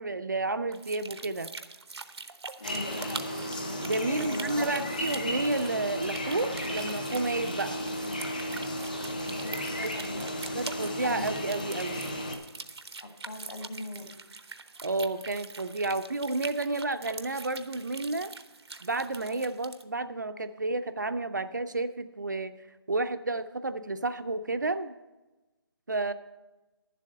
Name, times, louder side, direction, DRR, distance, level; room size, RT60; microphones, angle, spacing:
voice 1, 0.0-1.5 3.8-7.8 9.8-9.9 10.5-12.1 14.8-18.3 18.8-22.5 22.9-24.9 25.9-26.1, right 2 dB, 45° right, 10 dB, 0.5 m, -31 dB
sound 1, 0.7-19.8, right 4 dB, 80° right, 0.8 m, -44 dB
voice 2, 2.6-3.3 4.1-5.4 8.9-9.0 9.4-10.4 11.0-11.4 13.0-14.1, left 1 dB, 50° left, 4 dB, 1.8 m, -41 dB
sound 2, 2.6-12.4, left 1 dB, 20° left, 0.7 m, -34 dB
10.5 x 7.5 x 6.4 m, 1.1 s
hypercardioid pair, 180°, 13 cm